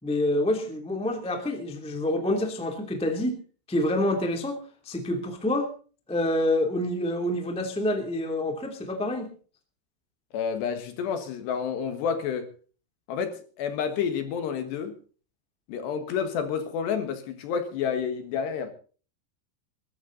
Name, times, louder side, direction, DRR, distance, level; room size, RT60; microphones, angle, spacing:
voice 1, 0.0-3.4 3.7-4.6 4.8-5.7 6.1-9.3, left 1 dB, 5° left, 1.2 m, -27 dB
voice 2, 10.3-12.5 13.1-14.9 15.7-18.7, left 7 dB, 65° left, 3.4 m, -29 dB
21.0 x 13.0 x 4.0 m
omnidirectional pair, 5.7 m